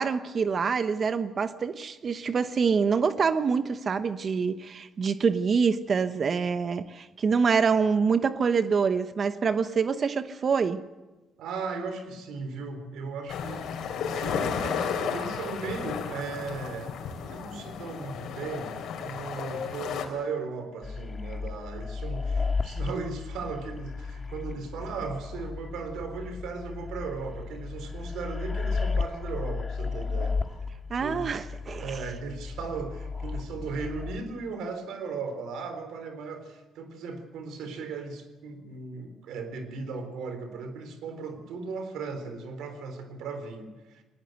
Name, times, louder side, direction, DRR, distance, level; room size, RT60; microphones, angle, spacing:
voice 1, 0.0-10.8 30.9-32.0, right 5 dB, 45° right, 11 dB, 1.0 m, -26 dB
voice 2, 11.4-13.6 14.0-18.7 19.0-30.4 31.0-31.3 31.8-44.0, right 4 dB, 85° right, 8 dB, 3.8 m, -37 dB
sound 1, 13.3-20.0, left 6 dB, 80° left, 4.1 m, -33 dB
sound 2, 20.8-34.2, left 4 dB, 25° left, 1.9 m, -34 dB
20.0 x 19.5 x 8.0 m, 1.2 s
cardioid pair, 90°, 0 cm